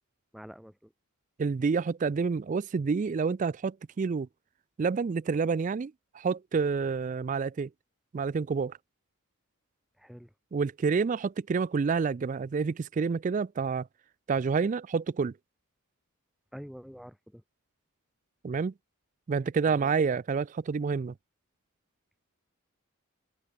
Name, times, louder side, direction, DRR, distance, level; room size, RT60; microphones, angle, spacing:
voice 1, 0.3-0.9 10.0-10.3 16.5-17.4, equal, ahead, 1.2 m, -46 dB
voice 2, 1.4-4.3 4.8-7.7 8.1-8.8 10.5-13.9 14.3-15.3 18.4-18.7 19.3-21.1, right 5 dB, 35° right, 0.3 m, -28 dB
head